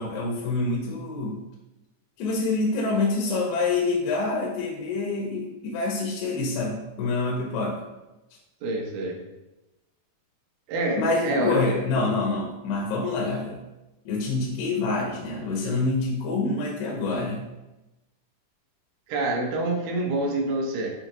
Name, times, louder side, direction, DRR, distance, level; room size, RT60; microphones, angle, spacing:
voice 1, 0.0-1.4 2.2-7.7 11.0-13.6 14.1-17.4, left 3 dB, 80° left, -2 dB, 2.6 m, -26 dB
voice 2, 8.6-9.2 10.7-11.6 19.1-20.9, right 2 dB, 75° right, 0 dB, 2.4 m, -26 dB
6.7 x 2.8 x 2.8 m, 1.0 s
omnidirectional pair, 4.8 m